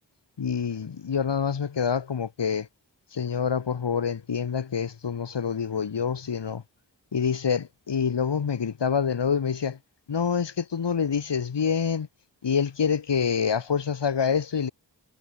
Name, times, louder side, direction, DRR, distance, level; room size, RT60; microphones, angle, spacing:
voice 1, 0.4-2.7 3.1-6.6 7.1-9.8 10.1-12.1 12.4-14.7, left 6 dB, 80° left, 2.3 m, -26 dB
cardioid pair, 45°, 41 cm